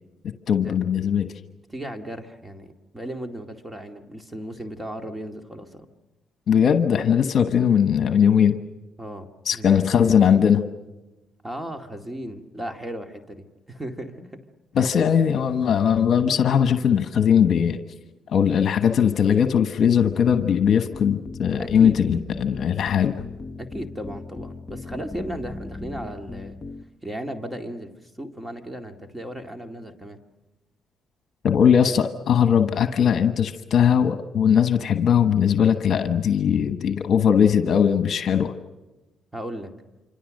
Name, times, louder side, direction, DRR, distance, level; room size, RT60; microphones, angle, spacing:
voice 1, 0.5-1.3 6.5-8.6 9.4-10.6 14.7-17.8 18.3-23.1 31.4-38.5, left 8 dB, 60° left, 8 dB, 1.2 m, -19 dB
voice 2, 1.7-5.9 9.0-9.8 11.4-14.4 21.5-22.0 23.6-26.6 27.0-30.2 31.8-32.0 39.3-39.7, right 1 dB, 10° right, 5 dB, 2.3 m, -36 dB
sound 1, 20.0-26.8, left 3 dB, 30° left, 1.0 m, -38 dB
27.5 x 25.5 x 6.6 m, 1.1 s
cardioid pair, 90°, 0 cm